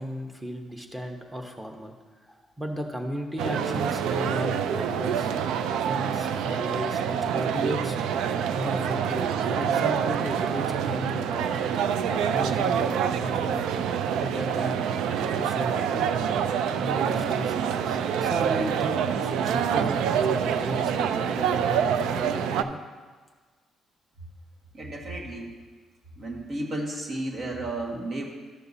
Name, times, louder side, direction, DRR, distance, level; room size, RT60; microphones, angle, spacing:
voice 1, 0.0-1.9 2.2-5.3 5.8-8.0 8.5-11.5 12.1-13.6 14.0-16.1 16.8-22.8, equal, 10° right, 4 dB, 1.0 m, -35 dB
sound 1, 3.4-22.6, right 8 dB, 90° right, 0.3 m, -26 dB
voice 2, 24.7-25.5 26.2-28.2, right 1 dB, 60° right, -1 dB, 1.7 m, -33 dB
12.5 x 6.7 x 2.7 m, 1.5 s
cardioid pair, 90°, 0 cm